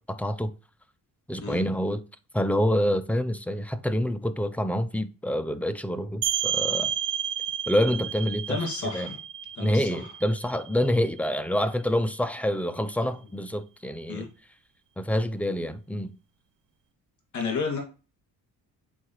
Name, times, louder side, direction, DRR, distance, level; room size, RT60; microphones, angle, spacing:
voice 1, 0.1-0.5 1.3-2.0 2.3-6.9 7.7-8.6 8.9-9.1 9.6-14.3 15.0-16.1, equal, 5° left, 0.5 m, -27 dB
sound 1, 6.2-11.7, right 9 dB, 60° right, 0.6 m, -31 dB
voice 2, 8.5-9.2 9.5-10.1 14.1-14.3 17.3-17.8, left 4 dB, 55° left, 2.1 m, -31 dB
8.1 x 4.6 x 3.1 m
cardioid pair, 110°, 35 cm